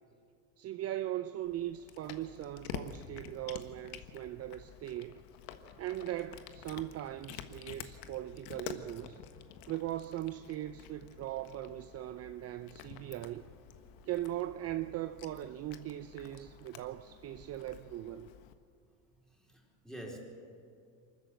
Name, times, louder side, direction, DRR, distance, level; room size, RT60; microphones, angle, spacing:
voice 1, 0.6-5.2 5.8-9.2 9.7-13.5 14.0-18.3, right 13 dB, 40° right, 0.6 m, -39 dB
Cat, 1.4-18.5, left 9 dB, 70° left, 1.5 m, -49 dB
voice 2, 19.4-20.2, right 1 dB, ahead, 4.5 m, -46 dB
24.0 x 13.5 x 8.2 m
supercardioid pair, 105°, 38 cm